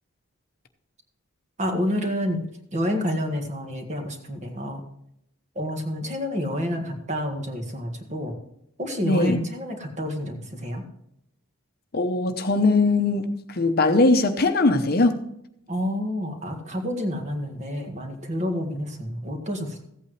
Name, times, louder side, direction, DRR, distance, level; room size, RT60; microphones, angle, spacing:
voice 1, 1.6-2.4 2.7-4.8 5.6-8.3 8.8-10.8 15.7-19.8, equal, 35° right, 1.7 m, -29 dB
voice 2, 9.0-9.4 11.9-15.2, left 2 dB, 45° left, 0.9 m, -20 dB
15.0 x 8.7 x 3.2 m
head